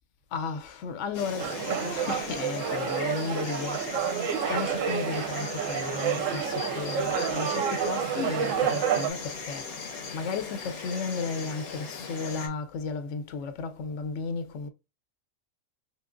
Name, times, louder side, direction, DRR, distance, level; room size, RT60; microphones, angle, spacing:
voice 1, 0.3-9.8 10.1-14.7, left 5 dB, 65° left, 0.9 m, -34 dB
Insect, 1.1-12.5, left 4 dB, 85° left, 1.3 m, -38 dB
sound 1, 1.4-9.1, right 8 dB, 70° right, 0.9 m, -29 dB
3.7 x 3.1 x 2.5 m
omnidirectional pair, 1.5 m